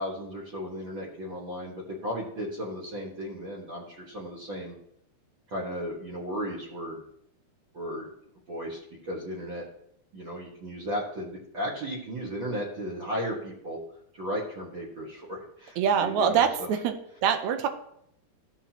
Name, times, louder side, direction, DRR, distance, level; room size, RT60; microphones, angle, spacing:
voice 1, 0.0-4.7 5.5-7.0 7.7-8.1 8.5-9.6 10.1-13.8 14.1-16.7, equal, 45° right, -5 dB, 2.0 m, -35 dB
voice 2, 15.8-17.0 17.2-17.7, right 7 dB, 75° right, 7 dB, 2.0 m, -24 dB
15.0 x 5.8 x 2.9 m, 0.73 s
omnidirectional pair, 3.5 m